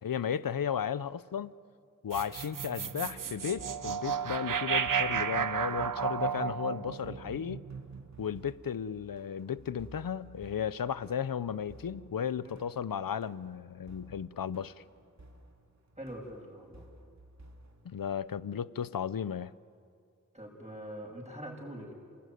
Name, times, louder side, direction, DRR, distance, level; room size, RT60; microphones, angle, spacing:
voice 1, 0.0-1.5 2.0-7.6 8.2-14.7 17.8-19.5, left 8 dB, 85° left, 17 dB, 0.7 m, -34 dB
sound 1, 2.1-8.4, right 7 dB, 70° right, 0.7 m, -33 dB
sound 2, 3.0-18.1, right 1 dB, 55° right, 2.7 m, -56 dB
voice 2, 16.0-16.8 20.3-21.9, equal, 20° right, 0 dB, 7.0 m, -43 dB
29.5 x 20.0 x 9.4 m, 2.4 s
wide cardioid pair, 75°, 33 cm